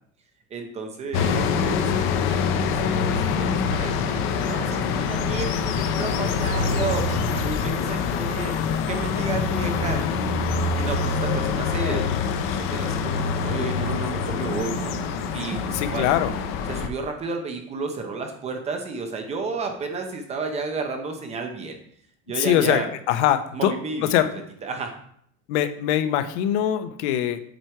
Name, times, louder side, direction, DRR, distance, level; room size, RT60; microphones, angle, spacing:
voice 1, 0.5-8.5 8.9-10.0 10.8-12.2 12.5-16.1 16.7-21.8 22.3-22.9 23.5-24.1 24.6-24.9, right 4 dB, 20° right, 4 dB, 0.6 m, -32 dB
sound 1, 1.1-16.9, left 5 dB, 35° left, 0.5 m, -25 dB
sound 2, 6.5-10.1, right 3 dB, 60° right, 3.1 m, -44 dB
voice 2, 8.0-8.4 15.7-16.3 22.4-23.7 24.1-24.3 25.5-27.4, left 11 dB, 70° left, 11 dB, 0.8 m, -23 dB
7.7 x 4.5 x 4.7 m, 0.67 s
cardioid pair, 175°, 36 cm